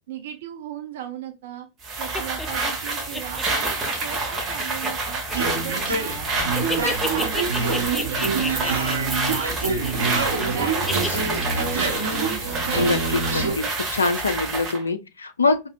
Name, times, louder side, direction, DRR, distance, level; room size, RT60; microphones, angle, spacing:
voice 1, 0.1-1.7 2.0-5.2 5.6-9.5 9.8-11.2, right 10 dB, 55° right, 0.5 m, -37 dB
sound 1, 1.8-14.8, right 3 dB, 25° right, 1.2 m, -28 dB
sound 2, 2.1-6.1 6.4-10.5 10.9-11.2, left 2 dB, 10° left, 0.5 m, -31 dB
sound 3, 5.3-13.5, right 4 dB, 70° right, 1.4 m, -26 dB
voice 2, 12.8-13.7 13.9-15.7, left 3 dB, 75° left, 0.4 m, -24 dB
4.8 x 2.7 x 2.2 m
figure-of-eight pair, 90°, 0 cm